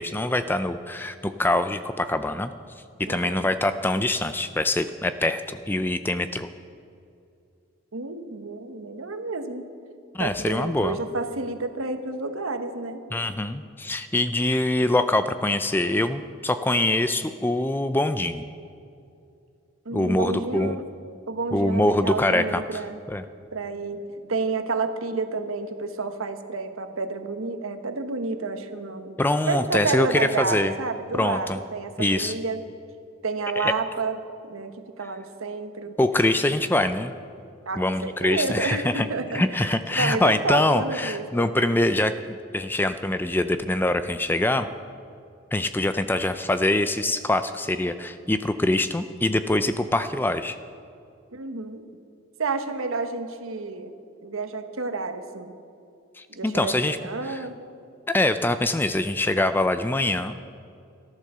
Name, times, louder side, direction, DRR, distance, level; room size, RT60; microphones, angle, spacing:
voice 1, 0.0-2.5 3.0-6.5 10.1-11.0 13.1-18.5 19.9-20.8 21.5-22.8 23.1-23.2 29.2-30.7 31.2-31.6 32.0-32.3 33.6-33.7 36.0-37.1 37.8-39.1 39.3-44.7 45.5-50.6 56.2-57.0 57.3-57.4 58.1-60.3, left 1 dB, 10° left, 10 dB, 0.4 m, -24 dB
voice 2, 3.1-3.5 7.9-9.7 10.2-13.0 19.8-20.8 21.3-23.0 23.5-29.2 29.5-32.6 33.2-36.0 37.7-41.2 51.3-51.8 52.4-53.9 54.2-55.5 56.3-57.6, right 3 dB, 80° right, 8 dB, 1.1 m, -30 dB
14.0 x 11.5 x 6.7 m, 2.5 s
head